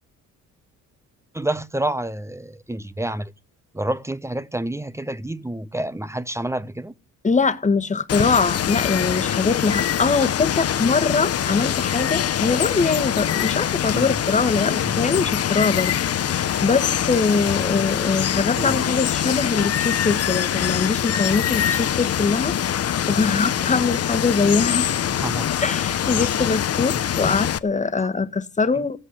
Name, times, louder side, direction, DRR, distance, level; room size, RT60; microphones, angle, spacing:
voice 1, 1.3-3.3 3.7-6.9 13.9-14.1 14.8-15.0 18.6-18.8 25.2-25.5 27.2-27.3 28.7-28.9, right 1 dB, 10° right, 0.9 m, -28 dB
voice 2, 7.2-22.6 23.1-24.9 25.6-29.0, left 4 dB, 25° left, 1.6 m, -22 dB
Water, 8.1-27.6, left 10 dB, 55° left, 1.0 m, -23 dB
15.5 x 8.9 x 9.8 m
cardioid pair, 90°, 30 cm